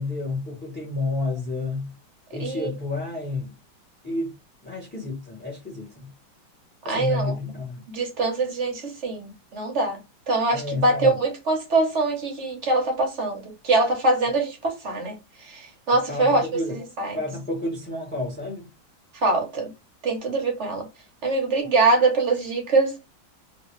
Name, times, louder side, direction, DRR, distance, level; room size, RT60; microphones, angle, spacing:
voice 1, 0.0-1.9 2.3-3.5 4.0-4.3 4.6-6.1 6.8-7.8 10.5-11.2 16.1-16.8 17.1-18.7, left 2 dB, 5° left, 0.9 m, -30 dB
voice 2, 2.4-2.7 6.8-7.4 7.9-10.0 10.3-16.4 16.7-17.2 19.2-19.7 20.0-20.9 21.2-23.0, right 2 dB, 50° right, 0.9 m, -23 dB
3.0 x 2.8 x 3.0 m
omnidirectional pair, 2.1 m